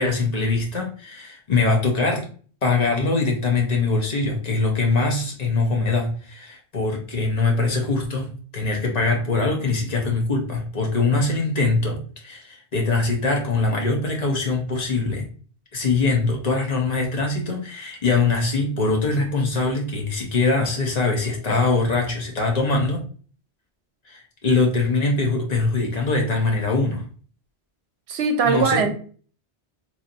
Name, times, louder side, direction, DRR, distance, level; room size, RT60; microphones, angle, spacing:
voice 1, 0.0-2.2 2.6-15.2 15.7-23.0 24.1-27.0 28.4-28.8, left 3 dB, 40° left, 0.8 m, -22 dB
voice 2, 28.1-28.9, right 5 dB, 70° right, 0.8 m, -20 dB
3.1 x 2.5 x 2.6 m
omnidirectional pair, 1.2 m